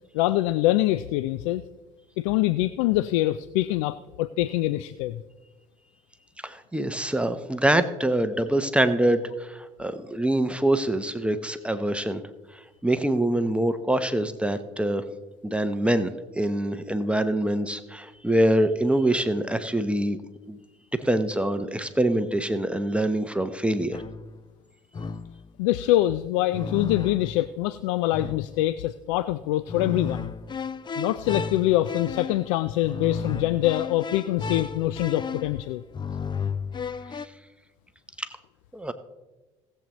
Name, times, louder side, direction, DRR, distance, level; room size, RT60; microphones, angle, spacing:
voice 1, 0.1-1.6 2.2-5.2 25.6-30.3 31.0-35.8, left 15 dB, 75° left, 15 dB, 0.4 m, -24 dB
voice 2, 6.4-12.2 12.8-15.0 15.4-16.1 16.4-20.2 20.5-20.6 21.0-24.0 37.1-37.2 38.2-38.3 38.7-38.9, right 1 dB, 5° right, 9 dB, 0.9 m, -24 dB
sound 1, 23.9-24.4 24.9-25.5 26.5-27.5 28.1-28.7 29.7-37.3, left 5 dB, 30° left, 0.6 m, -33 dB
18.5 x 7.8 x 3.0 m, 1.2 s
hypercardioid pair, 65°, 16 cm